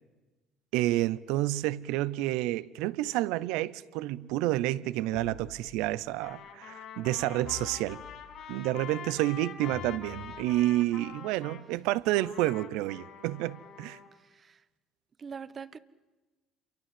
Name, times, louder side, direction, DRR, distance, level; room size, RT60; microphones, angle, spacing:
voice 1, 0.7-8.0 8.5-14.0, right 16 dB, 85° right, 0.8 m, -29 dB
sound 1, 5.1-6.2 7.4-8.7 9.7-10.9, left 7 dB, 80° left, 2.5 m, -49 dB
Trumpet, 6.1-11.6 12.1-14.1, left 7 dB, 60° left, 7.2 m, -45 dB
voice 2, 14.1-14.7 15.2-15.8, right 6 dB, 35° right, 1.2 m, -43 dB
28.0 x 24.0 x 7.8 m
supercardioid pair, 95°, 0 cm